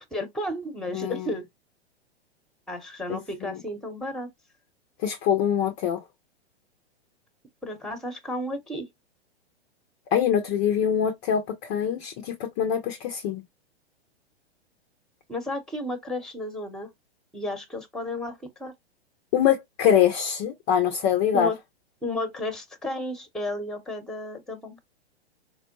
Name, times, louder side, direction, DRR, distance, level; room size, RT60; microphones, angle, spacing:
voice 1, 0.1-1.4 2.7-4.3 7.6-8.9 15.3-16.9 17.3-18.7 21.3-21.6 22.0-24.8, left 1 dB, ahead, 0.8 m, -33 dB
voice 2, 0.9-1.4 3.1-3.6 5.0-6.0 10.1-13.4 19.3-21.5, left 9 dB, 20° left, 0.3 m, -24 dB
4.4 x 2.0 x 2.9 m
figure-of-eight pair, 110°, 33 cm